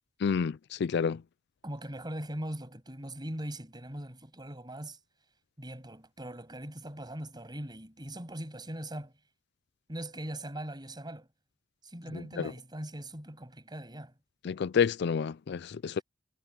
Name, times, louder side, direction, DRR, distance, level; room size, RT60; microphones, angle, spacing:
voice 1, 0.2-1.2 12.4-12.5 14.4-16.0, left 6 dB, 60° left, 0.4 m, -29 dB
voice 2, 1.6-5.0 5.6-9.1 9.9-11.3 11.8-14.1, right 1 dB, 25° right, 7.8 m, -40 dB
head